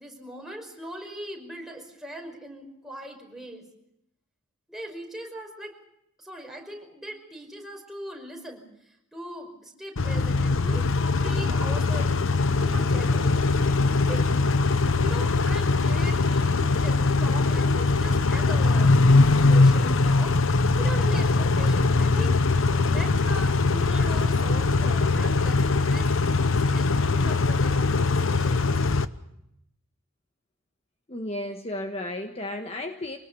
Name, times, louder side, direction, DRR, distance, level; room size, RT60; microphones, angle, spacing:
voice 1, 0.0-3.6 4.7-5.7 6.2-8.6 9.1-10.9 11.2-12.1 12.5-13.4 14.1-14.3 15.0-26.1 26.5-28.9, right 1 dB, ahead, 1 dB, 5.5 m, -40 dB
Car / Idling / Accelerating revving vroom, 10.0-29.1, left 3 dB, 65° left, 0.9 m, -21 dB
voice 2, 31.1-33.2, left 1 dB, 30° left, 5 dB, 1.3 m, -33 dB
25.5 x 19.5 x 6.9 m, 0.80 s
head